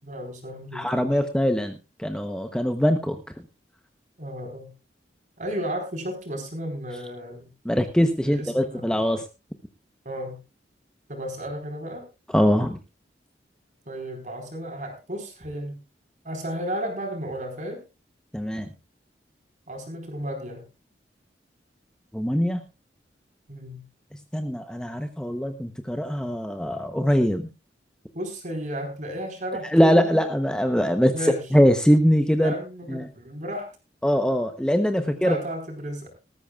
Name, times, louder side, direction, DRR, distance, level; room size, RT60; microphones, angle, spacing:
voice 1, 0.0-1.2 4.2-4.7 5.4-7.5 8.2-8.9 10.0-10.4 11.1-12.1 13.9-15.8 16.2-17.8 19.7-20.7 23.5-23.8 28.1-30.2 31.1-31.4 32.4-33.7 35.0-36.1, equal, 45° right, 4 dB, 4.5 m, -33 dB
voice 2, 0.7-3.2 7.6-9.2 12.3-12.8 18.3-18.7 22.1-22.6 24.3-27.5 29.7-32.5 32.9-33.1 34.0-35.4, equal, 5° left, 7 dB, 0.8 m, -22 dB
18.5 x 14.0 x 2.4 m, 0.27 s
head